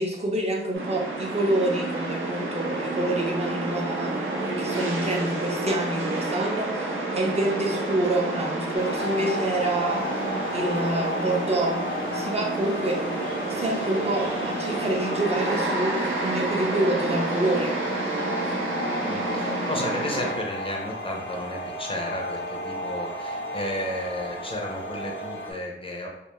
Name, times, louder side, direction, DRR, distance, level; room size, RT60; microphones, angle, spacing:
voice 1, 0.0-4.2 4.6-10.3 10.5-11.8 12.1-13.0 13.5-17.8, right 1 dB, 30° right, 0 dB, 0.5 m, -27 dB
sound 1, 0.7-20.3, right 2 dB, 75° right, 0.6 m, -29 dB
sound 2, 8.8-25.5, left 1 dB, 70° left, 0.6 m, -34 dB
voice 2, 19.1-26.1, left 1 dB, 25° left, -1 dB, 0.5 m, -33 dB
2.3 x 2.2 x 3.0 m, 0.87 s
wide cardioid pair, 100°, 20 cm